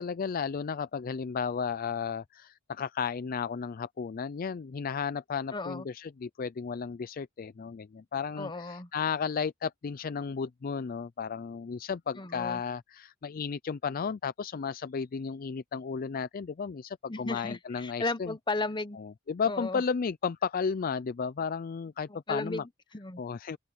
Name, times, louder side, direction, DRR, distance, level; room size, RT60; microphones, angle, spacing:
voice 1, 0.0-18.3 19.0-22.6 23.2-23.6, left 6 dB, 45° left, 0.4 m, -33 dB
voice 2, 5.5-5.9 8.4-8.9 12.2-12.6 17.1-19.0 19.5-19.8 22.1-23.2, left 2 dB, 25° left, 1.1 m, -35 dB
open air
head